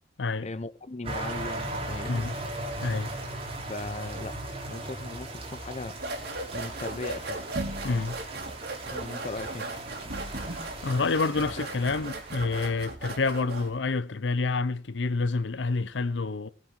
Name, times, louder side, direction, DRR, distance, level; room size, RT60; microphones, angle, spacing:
voice 1, 0.4-2.3 3.7-4.4 4.7-6.0 6.5-7.4 7.9-8.1 8.9-9.7, left 2 dB, 40° left, 0.7 m, -38 dB
sound 1, 1.0-12.7, right 2 dB, 30° right, 3.3 m, -38 dB
voice 2, 2.8-3.1 7.8-8.2 10.4-16.5, left 3 dB, 80° left, 0.6 m, -28 dB
sound 2, 5.9-13.8, right 2 dB, 60° right, 3.3 m, -37 dB
20.0 x 7.7 x 4.5 m
head